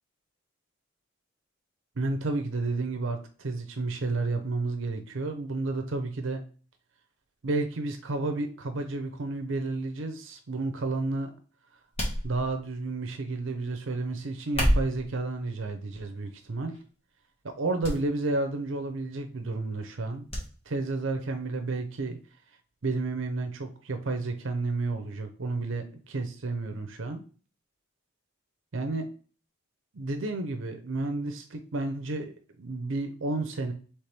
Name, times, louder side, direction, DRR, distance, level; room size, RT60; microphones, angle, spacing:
voice 1, 2.0-6.4 7.4-11.3 12.2-16.8 17.4-20.3 20.7-22.2 22.8-27.2 28.7-29.1 29.9-33.7, right 2 dB, 70° right, 6 dB, 0.7 m, -31 dB
sound 1, 12.0-12.8 14.4-15.1 15.9-16.3 16.7-16.8 17.8-18.0 18.3-18.4 20.3-20.5 20.8-20.9, equal, 30° left, 1.6 m, -28 dB
4.4 x 3.5 x 3.3 m, 0.39 s
head